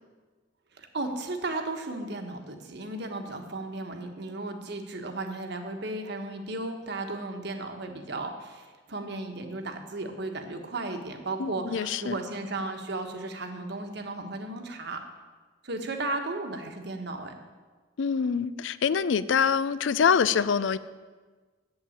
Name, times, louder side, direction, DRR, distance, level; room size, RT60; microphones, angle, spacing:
voice 1, 0.7-15.0 15.6-17.3, right 2 dB, 60° right, 5 dB, 1.3 m, -35 dB
voice 2, 11.4-12.2 18.0-20.8, left 6 dB, 75° left, 16 dB, 0.4 m, -25 dB
8.1 x 7.7 x 8.7 m, 1.4 s
head